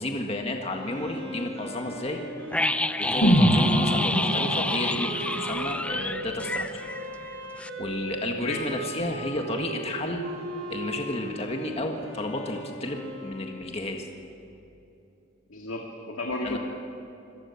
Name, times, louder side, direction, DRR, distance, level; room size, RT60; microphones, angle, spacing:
voice 1, 0.0-2.2 3.0-6.8 7.8-10.3 10.7-14.1 16.4-16.6, left 1 dB, 30° left, 2 dB, 1.7 m, -32 dB
Wind instrument woodwind instrument, 0.7-14.1, right 1 dB, 75° right, 5.1 m, -38 dB
sound 1, 2.5-7.3 7.6-7.7, left 2 dB, 5° left, 0.4 m, -29 dB
sound 2, 3.2-7.2 7.5-7.6, equal, 60° left, 3.0 m, -25 dB
voice 2, 8.4-8.7 15.5-16.6, left 2 dB, 85° left, 0 dB, 2.2 m, -33 dB
26.5 x 17.5 x 7.2 m, 2.8 s
head